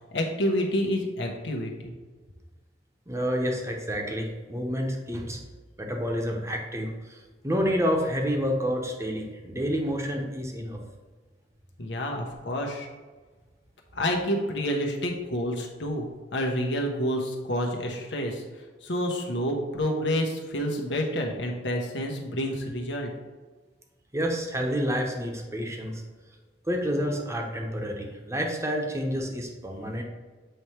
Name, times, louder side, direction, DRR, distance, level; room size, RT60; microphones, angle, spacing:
voice 1, 0.1-1.9 11.8-12.9 13.9-18.4 18.8-23.1, equal, 90° left, 1 dB, 1.1 m, -28 dB
voice 2, 3.1-5.4 5.8-7.2 7.4-10.8 24.1-26.0 26.7-30.0, equal, 15° right, 1 dB, 0.9 m, -29 dB
7.9 x 3.4 x 4.4 m, 1.4 s
head